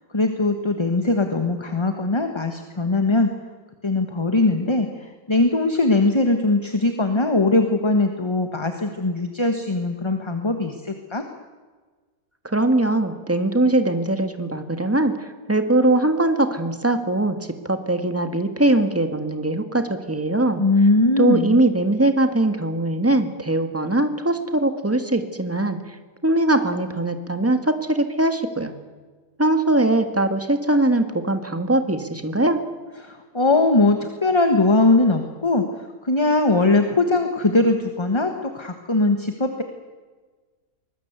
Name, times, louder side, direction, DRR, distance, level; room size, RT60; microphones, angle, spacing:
voice 1, 0.1-3.3 3.8-11.2 20.6-21.6 33.0-39.6, left 2 dB, 20° left, 6 dB, 1.3 m, -20 dB
voice 2, 12.4-17.4 17.7-20.6 21.2-26.0 26.2-28.7 29.4-32.6, right 2 dB, 10° right, 7 dB, 1.7 m, -21 dB
24.0 x 20.0 x 8.2 m, 1.4 s
omnidirectional pair, 1.7 m